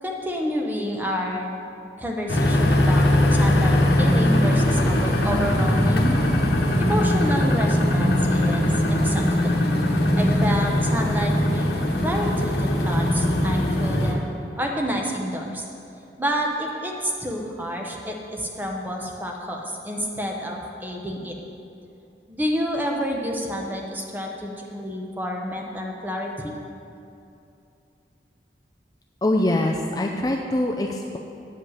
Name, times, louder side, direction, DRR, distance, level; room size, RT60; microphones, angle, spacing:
voice 1, 0.0-1.6 2.0-6.1 6.8-9.6 10.2-11.8 12.0-14.3 14.6-15.6 16.2-21.3 22.3-26.5, equal, 10° right, 0 dB, 0.9 m, -29 dB
sound 1, 2.3-14.1, left 1 dB, 70° left, 1.1 m, -20 dB
voice 2, 29.2-31.2, left 1 dB, 20° left, 1 dB, 0.4 m, -23 dB
9.6 x 5.2 x 7.3 m, 2.7 s
head